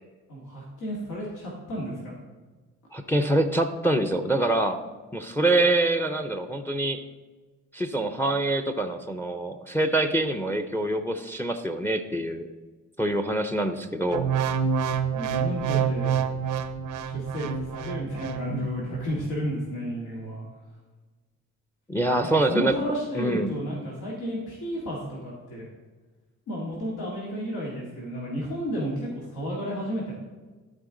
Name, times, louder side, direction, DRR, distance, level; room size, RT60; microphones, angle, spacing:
voice 1, 0.3-2.2 15.1-16.3 17.0-20.4 22.1-25.6 26.5-30.1, equal, 80° left, -5 dB, 2.2 m, -32 dB
voice 2, 2.9-4.8 5.1-7.0 7.7-12.5 13.0-14.3 21.9-22.7 23.1-23.5, right 1 dB, 5° left, 8 dB, 0.6 m, -25 dB
sound 1, 14.1-18.5 19.0-19.2, right 7 dB, 85° right, 0.7 m, -27 dB
13.0 x 4.6 x 3.9 m, 1.3 s
cardioid pair, 90°, 30 cm